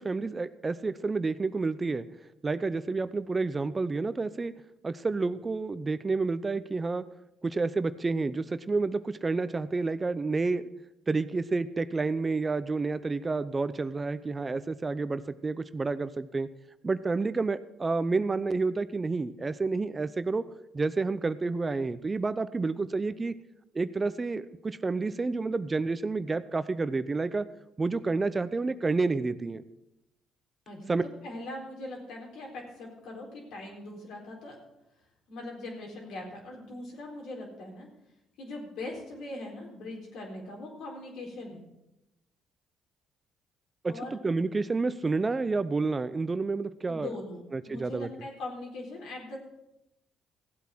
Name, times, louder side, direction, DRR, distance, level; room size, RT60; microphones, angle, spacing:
voice 1, 0.0-2.1 2.4-4.5 4.8-7.0 7.4-10.6 11.1-16.5 16.8-20.4 20.7-23.3 23.7-27.4 27.8-29.6 30.9-31.0 43.8-47.1 47.5-48.1, right 3 dB, 30° right, 14 dB, 0.6 m, -29 dB
voice 2, 31.2-34.6 35.3-37.9 38.4-41.6 43.9-44.2 46.9-49.4, left 2 dB, 75° left, 0 dB, 4.1 m, -41 dB
15.5 x 8.2 x 6.1 m, 0.90 s
supercardioid pair, 65°, 0 cm